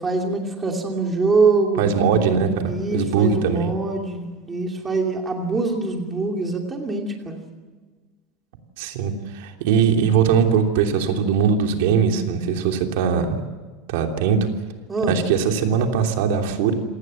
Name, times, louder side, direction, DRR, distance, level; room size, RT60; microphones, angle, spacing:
voice 1, 0.0-1.8 2.7-7.4 14.9-15.2, right 3 dB, 15° right, 2 dB, 2.6 m, -23 dB
voice 2, 1.8-3.7 8.8-13.4 13.9-14.4 15.1-16.7, right 6 dB, 65° right, 4 dB, 3.1 m, -20 dB
27.5 x 18.5 x 7.7 m, 1.4 s
supercardioid pair, 175°, 0 cm